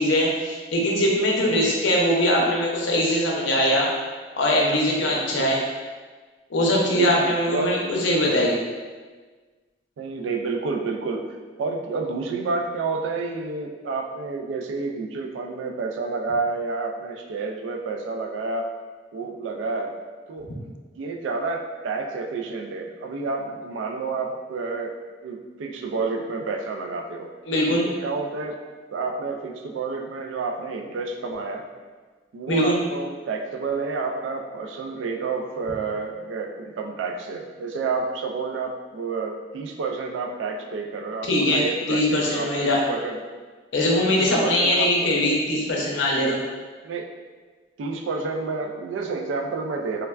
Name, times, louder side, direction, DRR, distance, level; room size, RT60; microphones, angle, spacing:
voice 1, 0.0-3.9 4.4-5.6 6.5-8.6 27.5-27.9 32.5-32.8 41.3-42.8 43.7-46.4, left 1 dB, 80° left, -2 dB, 0.6 m, -21 dB
voice 2, 1.4-1.8 5.3-5.5 6.9-7.7 10.0-11.2 11.6-18.7 19.1-20.0 20.3-25.0 25.2-27.3 27.8-28.6 28.9-31.7 32.3-43.2 44.2-45.1 46.8-47.1 47.8-50.1, right 4 dB, 85° right, 3 dB, 0.3 m, -29 dB
3.2 x 2.2 x 2.3 m, 1.4 s
head